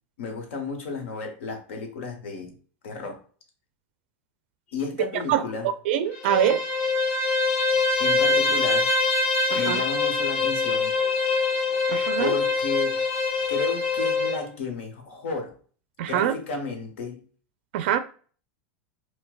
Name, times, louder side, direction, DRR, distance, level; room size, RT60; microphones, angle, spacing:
voice 1, 0.2-2.5 2.8-3.2 4.7-5.7 8.0-8.9 9.5-11.0 12.2-13.0 13.5-15.5 16.1-17.2, left 4 dB, 80° left, 1.0 m, -32 dB
voice 2, 5.9-6.6 9.5-9.8 11.9-12.4 16.0-16.3 17.7-18.0, right 10 dB, 70° right, 0.4 m, -24 dB
Bowed string instrument, 6.1-14.4, left 4 dB, 40° left, 0.9 m, -24 dB
4.5 x 2.1 x 2.3 m
supercardioid pair, 120°, 7 cm